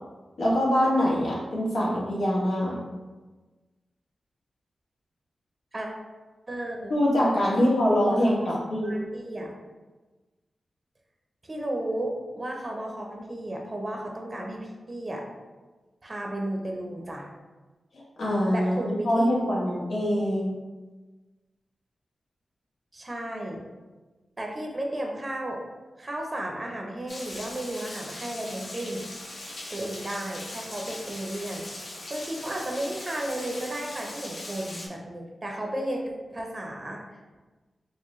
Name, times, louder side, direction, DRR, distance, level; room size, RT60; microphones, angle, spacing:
voice 1, 0.4-2.8 6.9-8.9 17.9-20.5, equal, 90° left, -5 dB, 1.1 m, -24 dB
voice 2, 6.5-6.9 7.5-8.5 8.8-9.5 11.4-15.2 16.0-17.3 18.5-19.3 22.9-23.6 24.4-25.6 26.0-29.1 29.7-31.7 32.1-37.2, right 1 dB, 35° right, 0 dB, 0.6 m, -33 dB
Rain, 27.1-34.9, left 1 dB, 70° left, 0.8 m, -40 dB
4.5 x 2.1 x 3.0 m, 1.2 s
cardioid pair, 65°, 0 cm